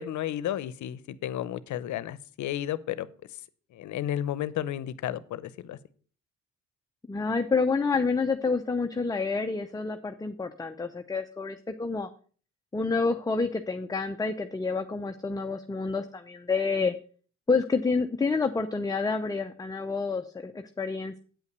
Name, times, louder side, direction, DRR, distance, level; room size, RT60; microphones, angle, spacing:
voice 1, 0.0-3.1 3.7-5.8, left 11 dB, 75° left, 17 dB, 0.7 m, -32 dB
voice 2, 7.1-12.1 12.7-17.0 17.5-21.2, left 4 dB, 10° left, 7 dB, 0.6 m, -28 dB
8.8 x 5.5 x 6.7 m, 0.42 s
cardioid pair, 90°, 30 cm